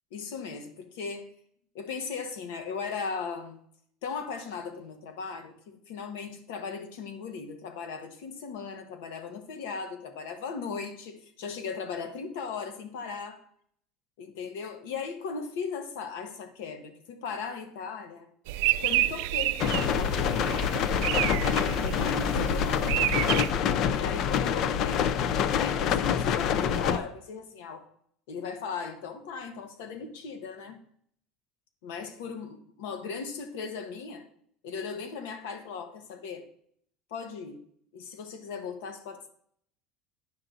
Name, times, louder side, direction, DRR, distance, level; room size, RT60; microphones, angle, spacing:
voice 1, 0.1-1.3 1.7-3.6 4.0-13.4 14.2-18.3 18.8-20.6 21.5-23.3 23.9-25.2 25.5-27.8 28.3-30.8 31.8-34.2 34.6-36.4 37.1-37.6 37.9-39.3, left 5 dB, 85° left, 7 dB, 1.3 m, -37 dB
sound 1, 18.5-23.5, right 16 dB, 70° right, 0.3 m, -29 dB
sound 2, 19.6-27.0, left 8 dB, 40° left, 0.4 m, -26 dB
9.8 x 5.8 x 3.9 m, 0.65 s
cardioid pair, 175°, 0 cm